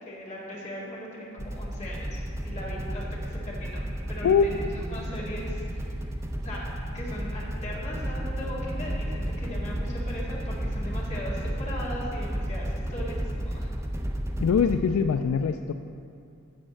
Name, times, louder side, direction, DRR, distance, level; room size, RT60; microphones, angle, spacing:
voice 1, 0.0-3.8 4.1-5.9 6.4-6.7 6.9-13.2 13.4-13.7, equal, 35° left, -5 dB, 2.1 m, -38 dB
sound 1, 1.4-14.7, equal, 15° right, 0.6 m, -32 dB
sound 2, 1.9-12.3, right 1 dB, 85° right, 2.6 m, -45 dB
voice 2, 4.2-4.6 14.4-15.7, left 6 dB, 75° left, 7 dB, 0.3 m, -23 dB
11.0 x 4.2 x 7.8 m, 2.5 s
head